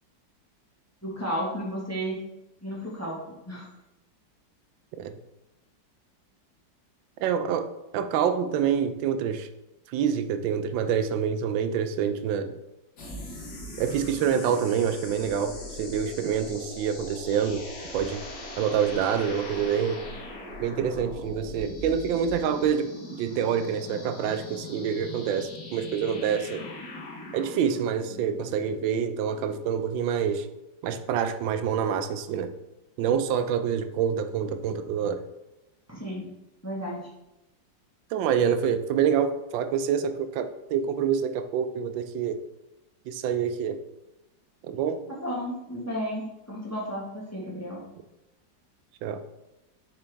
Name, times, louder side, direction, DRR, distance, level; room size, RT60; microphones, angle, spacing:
voice 1, 1.0-2.2 2.6-3.7 35.9-36.3 36.6-37.0 45.1-47.8, equal, 10° left, -4 dB, 1.2 m, -33 dB
voice 2, 7.2-7.7 7.9-9.5 9.9-12.6 13.8-17.7 17.9-18.2 18.6-20.0 20.6-26.6 27.3-30.5 30.8-32.5 33.0-35.2 38.1-42.4 43.1-43.8 44.6-45.0 49.0-49.2, right 8 dB, 90° right, 10 dB, 1.3 m, -27 dB
sound 1, 13.0-29.8, left 1 dB, 60° left, 1.6 m, -41 dB
6.8 x 4.5 x 3.4 m, 0.94 s
omnidirectional pair, 2.0 m